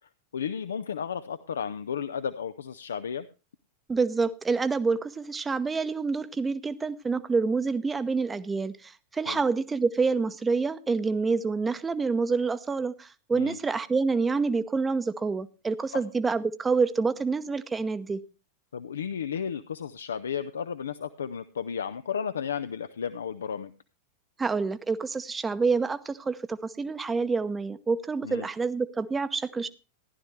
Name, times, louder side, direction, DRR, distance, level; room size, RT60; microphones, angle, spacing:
voice 1, 0.3-3.3 9.3-9.4 13.3-13.6 15.9-16.0 18.7-23.7 28.2-28.5, left 7 dB, 65° left, 12 dB, 0.5 m, -33 dB
voice 2, 3.9-18.2 24.4-29.7, right 4 dB, 15° right, 13 dB, 0.7 m, -27 dB
15.0 x 11.5 x 3.2 m, 0.31 s
figure-of-eight pair, 90°, 0 cm